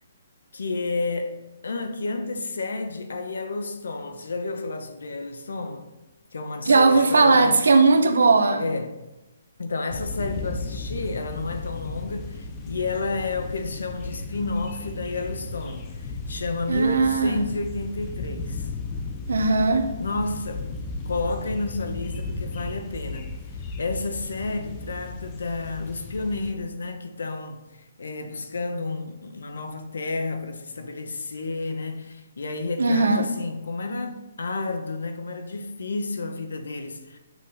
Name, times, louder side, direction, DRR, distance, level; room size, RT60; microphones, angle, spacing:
voice 1, 0.5-1.4 1.6-5.9 6.3-7.7 8.6-8.9 9.6-18.7 20.0-20.7 21.0-23.3 23.8-37.2, left 3 dB, 85° left, 1.1 m, -31 dB
voice 2, 6.7-8.6 16.7-17.4 19.3-19.9 32.8-33.3, right 3 dB, 80° right, 1.0 m, -18 dB
sound 1, 9.9-26.5, left 3 dB, 15° left, 0.5 m, -35 dB
7.6 x 6.1 x 4.2 m
hypercardioid pair, 180°, 0 cm